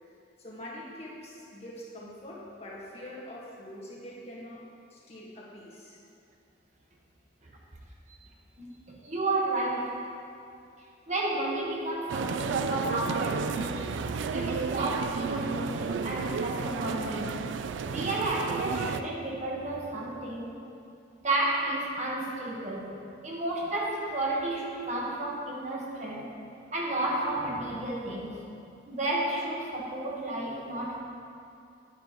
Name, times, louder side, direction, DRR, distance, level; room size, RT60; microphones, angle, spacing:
voice 1, 0.4-6.0, left 1 dB, 35° left, -5 dB, 1.6 m, -44 dB
voice 2, 8.6-9.9 11.1-17.4 17.8-20.5 21.2-22.9 23.2-26.3 26.7-28.4 28.9-31.0, right 2 dB, 40° right, -3 dB, 1.3 m, -32 dB
sound 1, 12.1-19.0, right 5 dB, 80° right, 0.3 m, -32 dB
11.5 x 9.3 x 3.0 m, 2.5 s
head